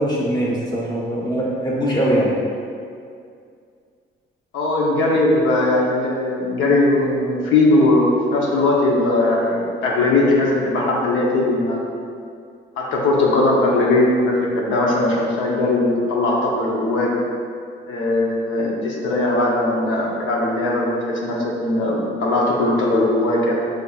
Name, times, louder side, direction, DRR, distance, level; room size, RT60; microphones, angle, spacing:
voice 1, 0.0-2.3, right 1 dB, 20° left, -5 dB, 1.1 m, -21 dB
voice 2, 4.5-11.8 12.8-17.1 17.9-23.5, left 2 dB, 85° left, -3 dB, 0.7 m, -19 dB
5.4 x 3.3 x 2.3 m, 2.3 s
cardioid pair, 90°, 20 cm